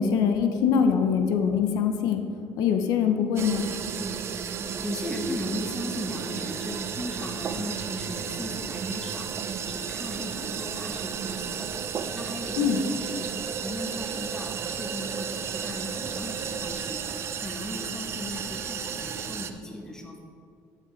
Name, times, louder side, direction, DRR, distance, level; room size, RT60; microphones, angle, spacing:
voice 1, 0.0-2.2 2.6-3.7 12.6-12.8, left 7 dB, 80° left, 6 dB, 0.9 m, -23 dB
sound 1, 3.4-19.5, right 7 dB, 40° right, 0.6 m, -33 dB
voice 2, 4.5-11.7 12.1-13.3 13.6-17.1 17.4-20.2, left 1 dB, 10° left, 1 dB, 1.3 m, -37 dB
13.0 x 5.9 x 4.6 m, 2.3 s
cardioid pair, 140°, 7 cm